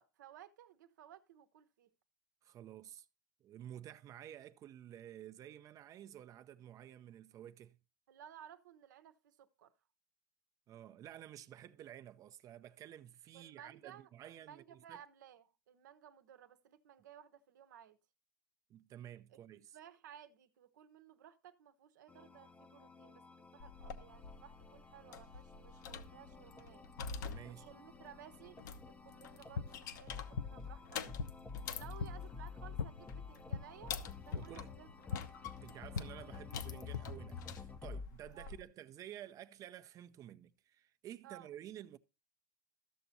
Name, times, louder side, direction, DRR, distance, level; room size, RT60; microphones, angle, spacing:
voice 1, 0.0-1.9 8.1-9.7 13.3-18.0 19.3-19.4 19.7-23.2 23.5-26.9 27.6-31.1 31.7-34.0 34.3-35.3 38.3-38.5 41.2-41.5, right 10 dB, 70° right, 0.9 m, -57 dB
voice 2, 2.4-3.1 3.4-7.8 10.7-15.0 18.7-19.8 27.2-27.7 34.3-34.7 35.6-42.0, right 11 dB, 35° right, 0.6 m, -52 dB
sound 1, 22.1-38.1, left 6 dB, 15° left, 0.7 m, -51 dB
sound 2, 23.6-38.6, left 6 dB, 70° left, 1.0 m, -49 dB
sound 3, 29.2-37.0, left 6 dB, 85° left, 0.5 m, -44 dB
13.5 x 6.8 x 2.8 m
hypercardioid pair, 105°, 10 cm